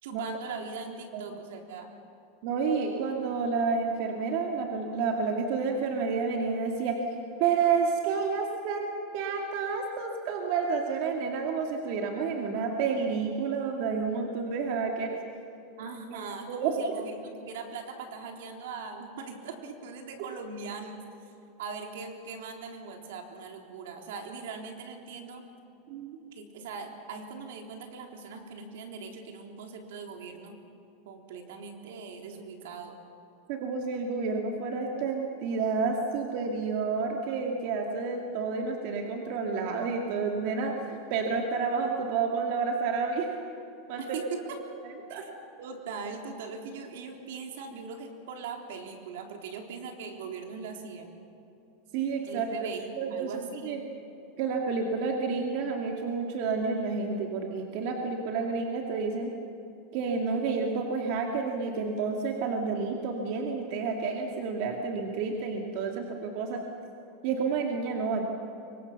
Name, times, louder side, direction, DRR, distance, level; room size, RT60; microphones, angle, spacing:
voice 1, 0.0-1.9 15.8-21.0 21.6-25.4 26.3-30.6 31.1-32.9 44.0-44.6 45.1-45.3 45.6-51.1 52.3-53.8, right 5 dB, 80° right, 3 dB, 3.8 m, -40 dB
voice 2, 2.4-7.0 7.4-15.2 16.1-16.8 25.9-26.2 33.5-43.4 43.9-44.0 44.8-45.2 51.9-52.7 53.0-53.8 54.4-59.3 59.9-66.6 67.2-68.2, right 5 dB, 55° right, 1 dB, 2.4 m, -30 dB
25.5 x 24.0 x 6.9 m, 2.9 s
supercardioid pair, 145°, 0 cm